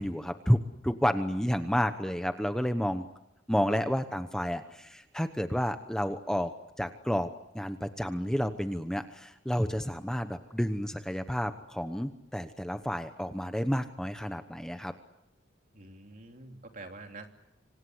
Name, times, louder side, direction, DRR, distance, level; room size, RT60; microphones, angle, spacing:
voice 1, 0.0-3.1 3.5-7.3 7.5-14.9, equal, 5° left, 8 dB, 1.0 m, -30 dB
voice 2, 15.7-17.3, right 2 dB, 45° right, 4 dB, 3.2 m, -46 dB
26.5 x 26.0 x 8.0 m, 0.85 s
head